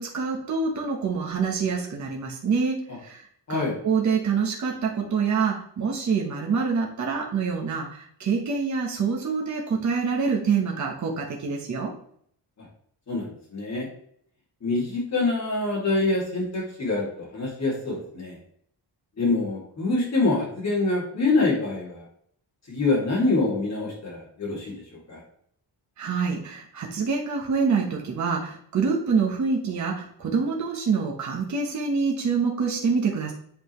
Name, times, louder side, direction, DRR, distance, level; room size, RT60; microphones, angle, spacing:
voice 1, 0.0-3.2 3.5-11.9 26.0-33.3, right 5 dB, 40° right, -1 dB, 1.1 m, -26 dB
voice 2, 13.1-13.9 14.6-18.4 19.2-22.0 22.7-25.2, left 3 dB, 35° left, -4 dB, 2.6 m, -25 dB
7.9 x 5.1 x 3.2 m, 0.65 s
wide cardioid pair, 180°, 45 cm